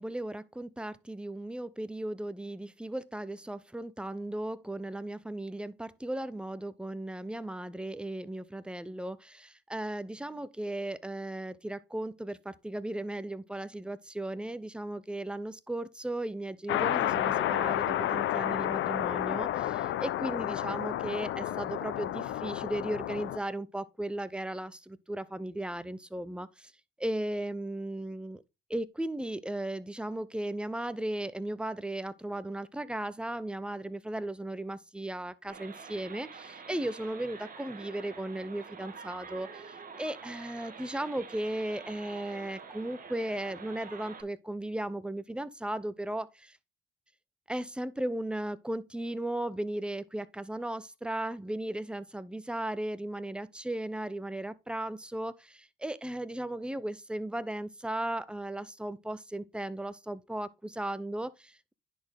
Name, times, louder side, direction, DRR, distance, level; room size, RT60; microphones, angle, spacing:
voice 1, 0.0-26.7 27.0-28.4 28.7-46.6 47.5-61.7, right 1 dB, 5° right, 0.7 m, -36 dB
sound 1, 16.7-23.4, left 12 dB, 80° left, 0.7 m, -31 dB
sound 2, 35.5-44.2, right 5 dB, 45° right, 1.5 m, -47 dB
10.0 x 4.4 x 3.5 m
cardioid pair, 90°, 20 cm